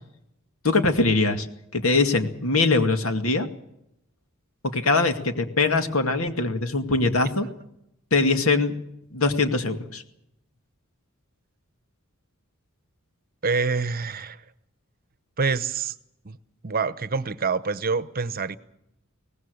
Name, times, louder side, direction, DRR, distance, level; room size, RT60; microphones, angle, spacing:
voice 1, 0.6-1.5 1.7-3.5 4.6-7.5 8.1-8.8 9.1-10.0, left 3 dB, 75° left, 6 dB, 2.2 m, -22 dB
voice 2, 13.4-14.4 15.4-15.9 16.2-16.4 16.6-18.6, right 4 dB, 45° right, 14 dB, 0.9 m, -26 dB
23.5 x 18.5 x 6.5 m, 0.79 s
head